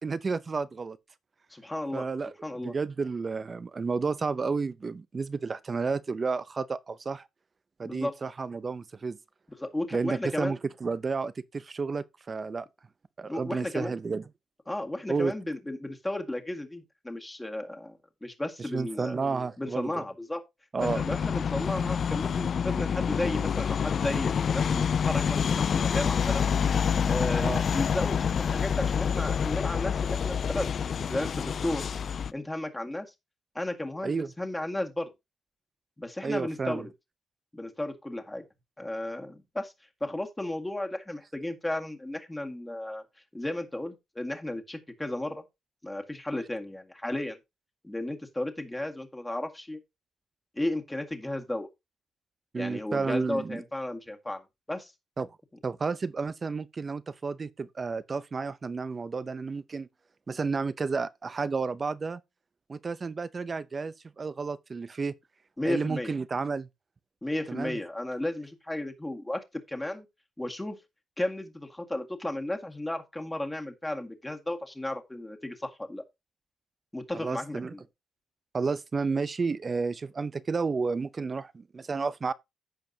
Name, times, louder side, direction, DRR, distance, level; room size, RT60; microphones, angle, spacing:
voice 1, 0.0-1.0 1.9-2.3 2.6-7.3 7.8-9.2 9.9-12.7 13.2-14.2 15.1-15.3 18.7-20.0 20.7-21.1 27.4-27.6 34.0-34.3 36.2-36.9 52.5-53.6 55.2-55.3 55.6-59.9 60.3-62.2 62.7-65.1 65.6-66.7 67.5-67.8 77.1-77.7 78.5-82.3, right 4 dB, 35° right, 0.6 m, -31 dB
voice 2, 1.5-2.1 2.4-2.8 7.8-8.2 9.6-10.5 13.3-13.9 14.7-19.2 19.6-20.4 20.8-26.4 27.1-30.7 31.0-31.9 32.3-33.1 33.6-35.1 36.0-36.9 37.5-38.4 38.8-39.7 40.0-43.0 43.3-45.4 45.8-47.4 47.8-49.8 50.6-51.7 52.6-54.9 65.6-66.1 67.2-70.1 70.4-70.8 71.2-76.0 76.9-77.8, left 1 dB, 10° left, 1.8 m, -34 dB
sound 1, 20.8-32.3, left 7 dB, 50° left, 0.4 m, -27 dB
15.0 x 5.1 x 2.8 m
cardioid pair, 90°, 0 cm